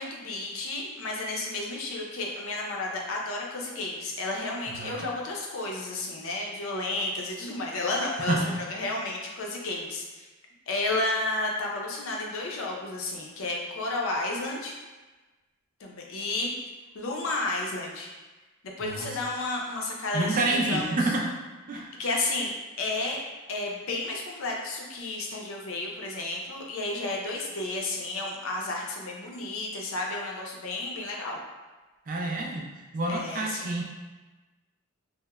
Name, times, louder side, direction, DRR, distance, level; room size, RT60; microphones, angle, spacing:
voice 1, 0.0-10.3 10.7-14.7 15.8-16.5 16.9-18.1 18.6-21.1 21.7-22.5 22.8-23.2 23.5-31.4 33.1-33.7, left 2 dB, 65° left, -1 dB, 0.5 m, -32 dB
voice 2, 8.3-8.6 18.8-19.2 20.1-21.3 21.7-21.9 32.1-32.7 32.9-33.8, right 2 dB, 40° right, -1 dB, 0.3 m, -28 dB
2.9 x 2.0 x 2.2 m, 1.2 s
head